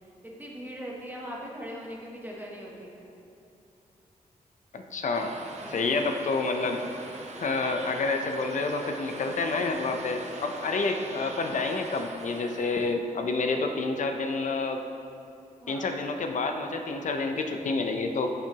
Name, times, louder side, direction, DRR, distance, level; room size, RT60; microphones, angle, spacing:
voice 1, 0.2-3.0 5.6-6.0 15.6-15.9, equal, 15° right, -3 dB, 1.0 m, -40 dB
voice 2, 4.7-5.3 5.7-6.8 7.4-14.8 15.7-18.3, left 3 dB, 60° left, 5 dB, 0.6 m, -28 dB
sound 1, 5.1-12.9, right 2 dB, 50° right, 0.8 m, -42 dB
10.5 x 5.9 x 2.9 m, 2.8 s
wide cardioid pair, 135°, 15 cm